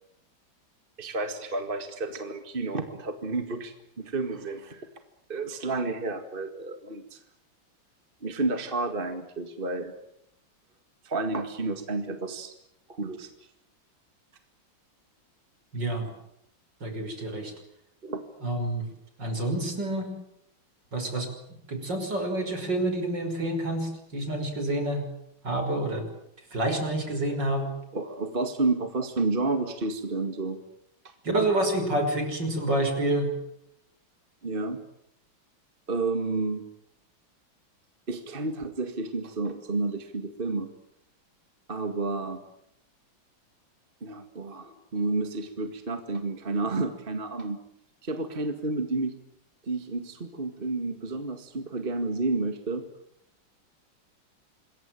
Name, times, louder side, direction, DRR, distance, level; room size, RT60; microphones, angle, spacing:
voice 1, 1.0-4.9 5.3-7.2 8.2-9.9 11.0-12.5 12.9-13.3 18.0-18.2 27.9-30.6 31.0-31.1 34.4-34.8 35.9-36.6 38.1-40.7 41.7-42.4 44.0-47.6 48.0-49.1 49.7-52.8, right 3 dB, 25° right, 8 dB, 2.1 m, -30 dB
voice 2, 15.7-16.1 16.8-17.5 18.4-18.9 19.2-20.1 20.9-21.3 21.7-25.1 25.4-26.1 26.5-27.7 31.2-33.3, right 1 dB, 60° right, 6 dB, 6.3 m, -28 dB
27.0 x 22.0 x 9.2 m, 0.77 s
omnidirectional pair, 2.2 m